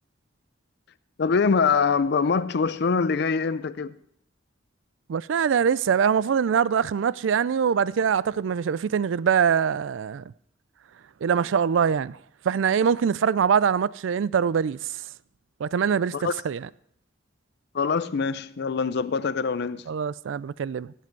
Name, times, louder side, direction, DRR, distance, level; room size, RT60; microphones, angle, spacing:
voice 1, 1.2-3.9 16.1-16.3 17.7-19.8, left 5 dB, 60° left, 0.5 m, -24 dB
voice 2, 5.1-10.2 11.2-12.2 12.4-14.8 15.6-16.7 19.9-20.9, right 7 dB, 80° right, 0.4 m, -23 dB
16.0 x 7.5 x 4.6 m
head